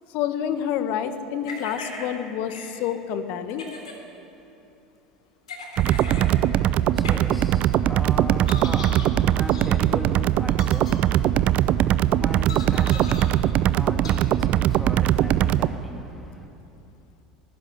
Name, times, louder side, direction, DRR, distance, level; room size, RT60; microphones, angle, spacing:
voice 1, 0.1-3.7, left 9 dB, 50° left, 10 dB, 1.5 m, -28 dB
sound 1, 1.4-2.1 2.5-2.7 3.5-4.0 5.5-6.3 7.0-7.2 8.4-9.1 9.5-9.7 10.5-10.9 12.5-13.2 14.0-14.1, left 3 dB, 75° left, 3.5 m, -38 dB
sound 2, 5.8-15.7, right 12 dB, 45° right, 0.7 m, -21 dB
voice 2, 5.9-16.5, equal, ahead, 1 dB, 3.1 m, -39 dB
19.0 x 15.5 x 10.0 m, 2.9 s
figure-of-eight pair, 70°, 3 cm